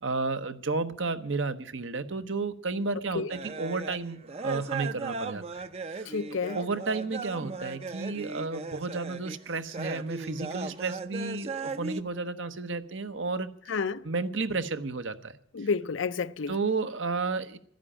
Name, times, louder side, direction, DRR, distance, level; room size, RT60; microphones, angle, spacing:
voice 1, 0.0-5.4 5.9-6.1 6.5-13.5 14.0-15.3 16.5-17.6, right 3 dB, 70° right, 1.0 m, -32 dB
sound 1, 3.3-12.0, right 4 dB, 30° right, 0.5 m, -37 dB
voice 2, 6.1-6.6 13.7-14.1 15.5-16.6, left 5 dB, 75° left, 0.6 m, -30 dB
12.5 x 10.5 x 8.8 m
head